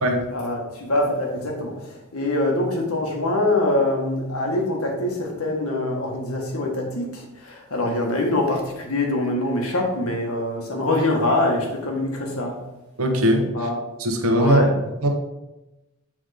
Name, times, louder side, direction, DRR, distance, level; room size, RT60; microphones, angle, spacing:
voice 1, 0.3-12.6 13.5-13.8 14.4-14.7, left 1 dB, 80° left, 1 dB, 1.5 m, -24 dB
voice 2, 13.0-13.5 14.0-14.6 15.0-15.1, right 1 dB, 80° right, 3 dB, 1.1 m, -19 dB
7.2 x 3.6 x 5.0 m, 1.0 s
head